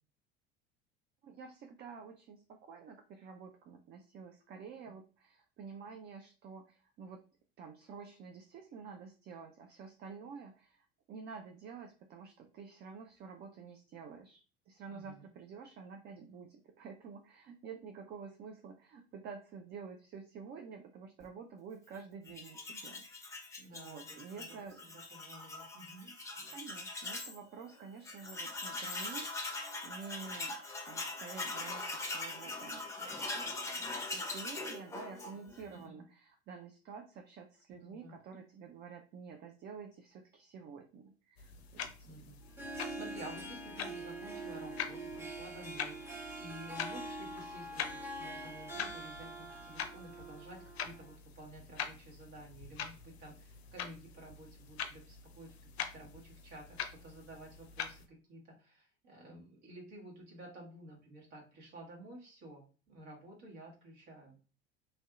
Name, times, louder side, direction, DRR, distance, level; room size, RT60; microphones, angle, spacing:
voice 1, 1.2-7.2 7.6-23.4 23.7-24.8 26.5-32.9 33.2-33.3 34.1-42.3, right 5 dB, 35° right, 4 dB, 0.4 m, -49 dB
voice 2, 14.9-15.3 23.6-24.6 24.9-26.1 35.8-35.9 37.7-38.2 41.5-41.6 42.0-46.0 46.4-64.4, right 1 dB, 55° right, -2 dB, 1.5 m, -52 dB
Tools, 22.3-27.4 27.7-27.8 28.0-35.6, left 2 dB, 10° left, 0.7 m, -41 dB
sound 1, 41.4-58.1, left 8 dB, 80° left, 0.5 m, -45 dB
Harp, 42.4-51.1, right 2 dB, 10° right, 1.0 m, -44 dB
3.1 x 2.7 x 2.3 m, 0.36 s
hypercardioid pair, 70°, 31 cm